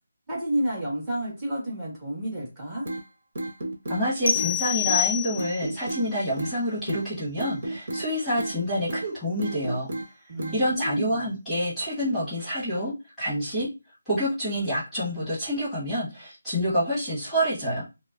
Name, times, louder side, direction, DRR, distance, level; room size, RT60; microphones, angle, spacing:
voice 1, 0.3-2.8 10.3-11.3, right 1 dB, 15° right, -7 dB, 1.6 m, -30 dB
sound 1, 2.9-3.0 3.4-4.0 4.4-4.5 4.9-5.0 5.4-6.0 6.4-6.6 6.9-7.0 7.4-8.1 8.4-8.6 8.9-9.1 9.4-10.1 10.4-10.6, right 2 dB, 50° right, 1.4 m, -32 dB
voice 2, 3.9-9.9 10.5-13.7 14.0-17.8, equal, ahead, -12 dB, 1.5 m, -27 dB
sound 2, 4.3-5.8, left 9 dB, 50° left, 0.5 m, -26 dB
5.8 x 2.1 x 2.5 m, 0.27 s
figure-of-eight pair, 170°, 0 cm